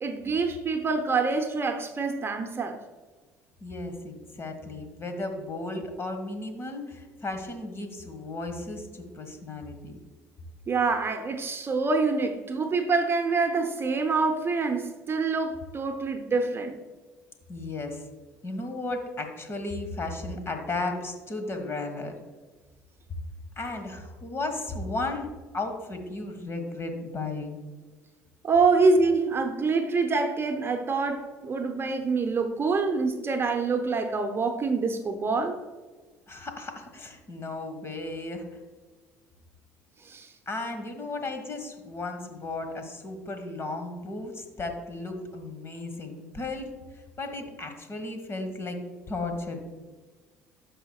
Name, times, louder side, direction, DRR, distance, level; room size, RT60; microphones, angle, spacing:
voice 1, 0.0-2.8 10.7-16.8 28.4-35.6 40.0-40.3, right 4 dB, 35° right, 0.8 m, -26 dB
voice 2, 3.6-10.0 17.5-18.0 18.4-22.2 23.5-27.6 36.3-38.5 40.5-48.8 49.1-49.6, left 2 dB, 35° left, 1.6 m, -35 dB
12.5 x 5.1 x 2.4 m
hypercardioid pair, 60°, 7 cm